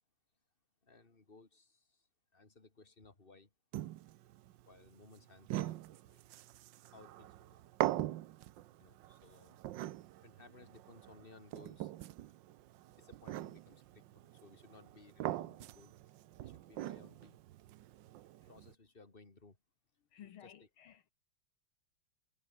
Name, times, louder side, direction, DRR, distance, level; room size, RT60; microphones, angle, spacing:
voice 1, 0.8-3.5 4.6-5.8 6.1-6.2 6.9-7.7 8.8-9.6 10.2-11.9 12.9-17.4 18.5-19.6 20.4-20.7, left 3 dB, 25° left, 3.2 m, -60 dB
sound 1, 3.7-18.7, right 14 dB, 70° right, 1.3 m, -43 dB
voice 2, 20.1-21.1, left 10 dB, 75° left, 2.1 m, -55 dB
omnidirectional pair, 2.4 m